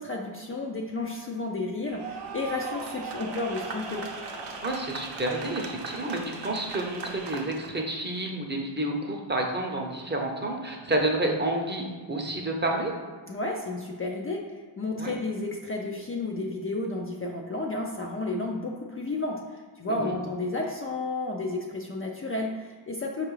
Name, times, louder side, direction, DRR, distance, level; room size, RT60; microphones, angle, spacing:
voice 1, 0.0-4.0 13.3-23.3, left 2 dB, 30° left, -1 dB, 0.4 m, -32 dB
sound 1, 1.9-7.8, right 4 dB, 55° right, 0.7 m, -38 dB
voice 2, 4.6-12.9 15.0-15.1 19.9-20.2, right 1 dB, 20° right, 1 dB, 0.7 m, -30 dB
4.5 x 2.4 x 3.1 m, 1.5 s
cardioid pair, 45°, 49 cm